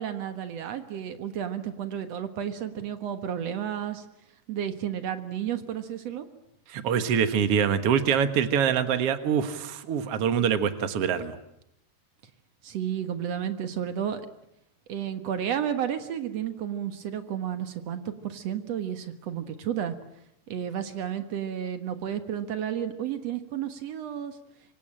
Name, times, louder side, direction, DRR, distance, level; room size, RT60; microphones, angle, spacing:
voice 1, 0.0-4.1 4.5-6.3 12.6-14.2 14.9-20.0 20.5-24.4, right 9 dB, 70° right, 9 dB, 1.5 m, -32 dB
voice 2, 6.7-11.4, right 7 dB, 90° right, 10 dB, 1.3 m, -25 dB
25.5 x 25.0 x 8.8 m, 0.77 s
omnidirectional pair, 5.1 m